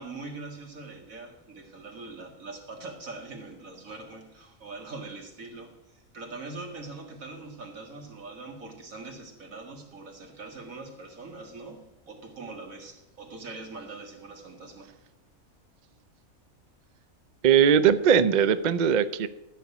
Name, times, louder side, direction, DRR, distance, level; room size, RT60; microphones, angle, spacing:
voice 1, 0.0-15.0, right 3 dB, 75° right, 2 dB, 2.3 m, -42 dB
voice 2, 17.4-19.3, right 8 dB, 55° right, 13 dB, 0.5 m, -20 dB
13.0 x 5.1 x 8.2 m, 0.94 s
omnidirectional pair, 1.4 m